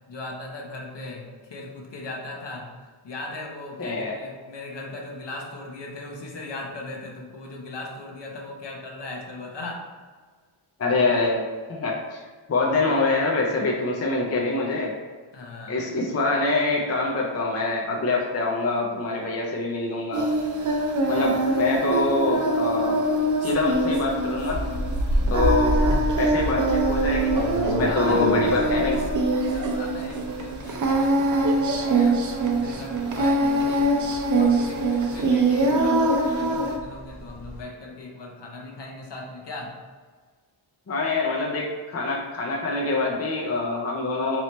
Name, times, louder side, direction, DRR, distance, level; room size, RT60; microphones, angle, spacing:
voice 1, 0.1-2.7 3.0-9.9 15.3-15.9 27.9-29.1 29.4-32.3 32.6-34.0 34.3-39.8, left 2 dB, 55° left, 0 dB, 0.8 m, -38 dB
voice 2, 3.8-4.1 10.8-11.4 11.7-12.2 12.5-14.9 15.7-20.3 21.1-23.0 23.4-24.6 25.3-25.8 26.1-27.3 27.6-29.0 40.9-44.4, left 3 dB, 30° left, -2 dB, 0.5 m, -25 dB
Singing, 20.1-36.8, right 2 dB, 40° right, 0.5 m, -23 dB
sound 1, 23.5-37.6, equal, 20° right, 1.2 m, -30 dB
3.1 x 3.0 x 4.1 m, 1.5 s
wide cardioid pair, 95°, 50 cm